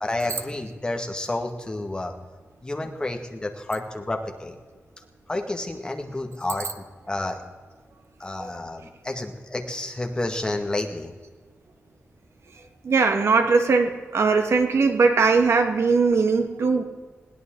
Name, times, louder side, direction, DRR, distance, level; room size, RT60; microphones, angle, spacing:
voice 1, 0.0-2.1 2.6-4.6 5.3-7.4 8.2-11.1, left 2 dB, 20° left, 3 dB, 1.9 m, -30 dB
voice 2, 12.8-16.8, right 4 dB, 65° right, 6 dB, 1.7 m, -20 dB
21.0 x 17.0 x 3.9 m, 1.5 s
wide cardioid pair, 120°, 5 cm